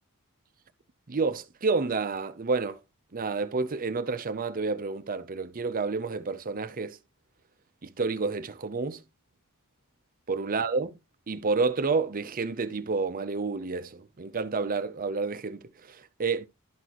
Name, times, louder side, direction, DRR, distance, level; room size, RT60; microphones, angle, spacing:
voice 1, 1.1-2.8 3.1-7.0 7.8-9.0 10.3-10.9 11.3-16.5, right 4 dB, 40° right, 0.6 m, -29 dB
12.0 x 4.1 x 3.0 m
head